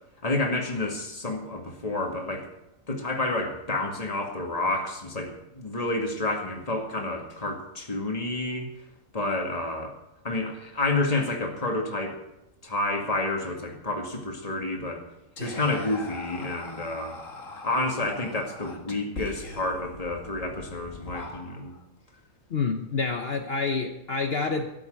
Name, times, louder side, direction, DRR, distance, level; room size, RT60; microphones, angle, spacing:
voice 1, 0.2-2.5 2.9-8.7 9.1-9.9 10.2-12.2 12.6-15.0 15.4-17.2 17.6-21.7, left 2 dB, 25° left, 2 dB, 2.2 m, -29 dB
Whispering, 15.4-21.8, left 2 dB, 65° left, 2.2 m, -41 dB
voice 2, 22.5-24.7, left 4 dB, 50° left, 5 dB, 1.1 m, -28 dB
13.5 x 7.8 x 9.2 m, 0.89 s
omnidirectional pair, 1.4 m